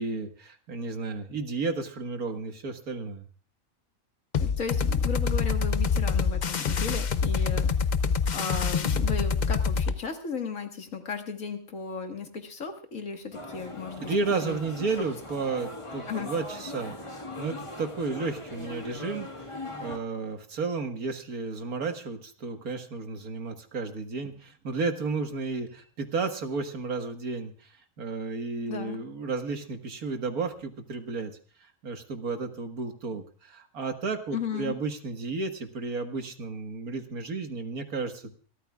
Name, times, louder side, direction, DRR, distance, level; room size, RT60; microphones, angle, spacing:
voice 1, 0.0-3.3 14.0-17.0 17.4-27.7 28.0-31.3 31.6-38.2, right 4 dB, 85° right, 6 dB, 2.1 m, -32 dB
sound 1, 4.3-10.0, left 5 dB, 45° left, 0.6 m, -26 dB
voice 2, 4.4-7.7 8.3-14.1 14.4-14.6 16.1-16.3 28.7-29.0 34.3-34.7, left 5 dB, 65° left, 5 dB, 2.1 m, -35 dB
sound 2, 13.3-20.0, left 2 dB, 20° left, 1.5 m, -40 dB
26.5 x 13.5 x 2.4 m, 0.42 s
omnidirectional pair, 1.5 m